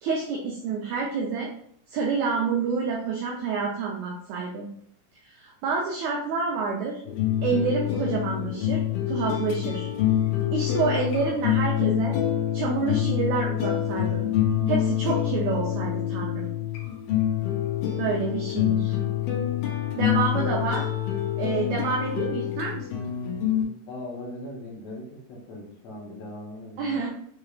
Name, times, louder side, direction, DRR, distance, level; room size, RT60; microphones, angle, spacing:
voice 1, 0.0-1.5 1.9-4.7 5.3-7.0 7.4-8.8 9.1-9.9 10.5-12.2 12.5-14.2 14.7-16.5 18.0-19.0 20.0-20.8 21.4-22.8 26.8-27.1, right 4 dB, 80° right, -2 dB, 1.7 m, -28 dB
sound 1, 7.1-23.6, left 11 dB, 90° left, 2.4 m, -26 dB
voice 2, 23.9-27.1, left 1 dB, 70° left, -3 dB, 1.7 m, -39 dB
5.8 x 3.2 x 2.4 m, 0.65 s
omnidirectional pair, 3.9 m